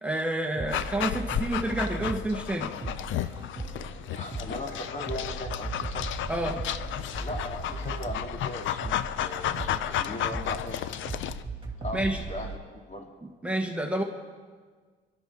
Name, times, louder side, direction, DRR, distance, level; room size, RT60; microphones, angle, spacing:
voice 1, 0.0-2.7 6.3-6.6 11.9-12.2 13.2-14.0, right 1 dB, 5° right, 1 dB, 1.4 m, -29 dB
sound 1, 0.6-12.6, right 3 dB, 25° right, 2.7 m, -38 dB
Dog, 0.7-11.4, left 11 dB, 80° left, 0.6 m, -33 dB
voice 2, 4.2-6.2 7.2-10.8 11.8-12.6 12.9-13.1, left 1 dB, 35° left, 1 dB, 2.7 m, -38 dB
24.0 x 12.0 x 3.8 m, 1.5 s
cardioid pair, 90°, 20 cm